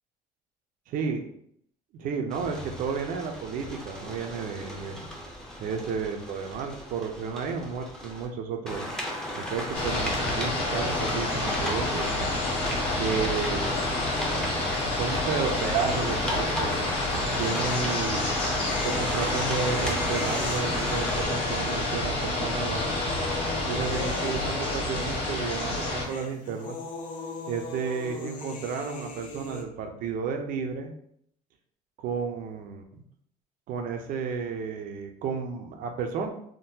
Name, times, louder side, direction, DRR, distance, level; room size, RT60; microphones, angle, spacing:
voice 1, 0.9-1.2 1.9-5.1 5.6-8.9 9.3-12.1 13.0-13.8 14.8-16.7 17.2-18.3 18.8-22.9 23.7-26.8 27.5-30.9 32.0-33.0 33.7-36.3, right 5 dB, 65° right, 4 dB, 0.6 m, -32 dB
sound 1, 2.3-8.3 8.7-21.3, left 1 dB, 5° left, 0.6 m, -35 dB
sound 2, 9.7-26.0, left 2 dB, 35° left, 1.3 m, -29 dB
sound 3, 13.6-14.0 14.2-14.3 17.0-25.3 25.6-29.6, left 3 dB, 60° left, 0.6 m, -39 dB
3.6 x 2.2 x 2.7 m, 0.68 s
cardioid pair, 135°, 16 cm